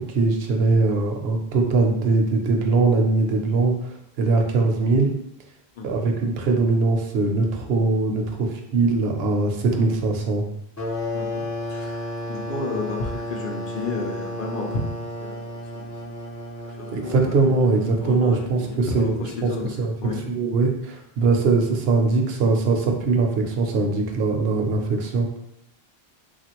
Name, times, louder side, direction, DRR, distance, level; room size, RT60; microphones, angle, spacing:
voice 1, 0.0-5.1 5.8-10.4 16.9-19.5 19.8-25.3, right 3 dB, 75° right, 2 dB, 0.8 m, -21 dB
voice 2, 5.8-6.1 9.7-9.9 11.1-14.8 15.2-15.4 15.7-15.9 16.8-17.5 18.0-20.2, left 3 dB, 60° left, 1 dB, 0.7 m, -32 dB
sound 1, 10.8-19.1, left 1 dB, 25° left, 0.4 m, -33 dB
3.1 x 2.4 x 2.9 m, 0.74 s
omnidirectional pair, 1.1 m